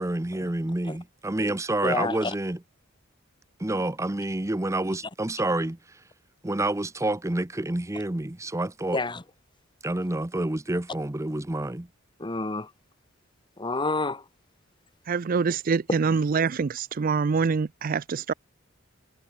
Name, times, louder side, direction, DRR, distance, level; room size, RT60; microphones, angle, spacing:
voice 1, 0.0-2.6 3.6-6.0 6.4-9.0 9.8-11.9, right 1 dB, 15° right, 0.7 m, -28 dB
voice 2, 1.8-2.3 8.9-9.2 12.2-12.7 13.6-14.2 15.9-16.0, left 3 dB, 25° left, 1.5 m, -28 dB
voice 3, 15.1-18.3, right 5 dB, 45° right, 0.4 m, -25 dB
head